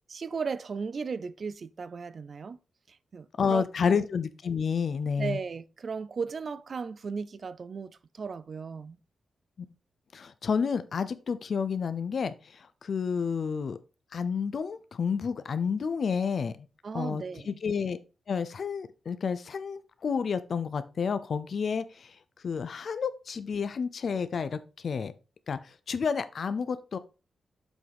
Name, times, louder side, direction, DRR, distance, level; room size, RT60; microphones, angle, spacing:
voice 1, 0.1-2.6 2.9-4.1 5.2-9.0 16.8-17.5, right 5 dB, 55° right, 0.5 m, -36 dB
voice 2, 3.4-5.4 9.6-9.7 10.1-13.8 14.1-16.7 16.9-18.0 18.3-22.2 22.4-25.1 25.5-27.0, left 6 dB, 60° left, 0.6 m, -30 dB
7.0 x 6.2 x 3.5 m
cardioid pair, 75°, 0 cm